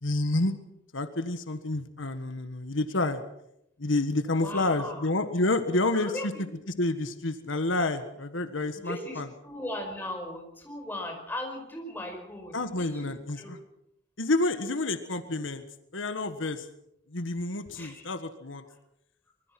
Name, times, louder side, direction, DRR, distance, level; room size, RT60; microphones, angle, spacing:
voice 1, 0.0-0.5 0.9-3.2 3.8-6.3 6.8-9.3 12.5-13.6 14.2-15.6 15.9-16.7 17.1-18.6, left 2 dB, 85° left, 9 dB, 1.6 m, -29 dB
voice 2, 4.4-5.1 5.9-6.5 8.8-13.1 13.4-13.5 17.7-18.1 18.7-18.8, left 1 dB, 10° left, 2 dB, 5.2 m, -38 dB
24.5 x 21.0 x 6.0 m, 0.80 s
head